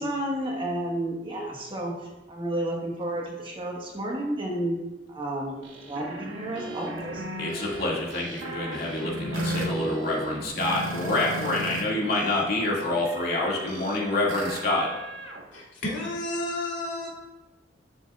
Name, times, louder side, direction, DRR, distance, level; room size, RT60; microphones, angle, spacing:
voice 1, 0.0-1.9 2.3-4.8 5.1-7.2, right 1 dB, 25° right, -2 dB, 1.4 m, -31 dB
sound 1, 5.6-11.8 12.1-15.4, right 1 dB, 90° right, 1.3 m, -35 dB
voice 2, 7.4-14.9, left 2 dB, 55° left, -4 dB, 2.2 m, -27 dB
voice 3, 15.5-17.1, left 1 dB, 70° left, -4 dB, 2.7 m, -31 dB
11.5 x 7.0 x 2.4 m, 1.0 s
head